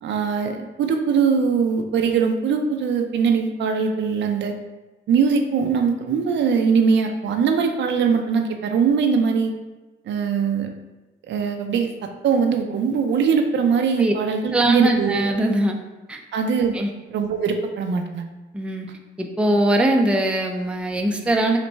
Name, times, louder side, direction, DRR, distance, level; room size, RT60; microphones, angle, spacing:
voice 1, 0.0-4.5 5.1-9.5 10.1-10.7 11.3-15.3 16.3-16.8 17.1-18.3, right 6 dB, 65° right, 5 dB, 0.5 m, -21 dB
voice 2, 14.5-15.8 16.1-16.2 16.7-16.9 18.5-18.9 19.2-21.6, right 1 dB, 5° right, 2 dB, 0.4 m, -21 dB
4.0 x 2.2 x 4.4 m, 1.2 s
cardioid pair, 90°, 20 cm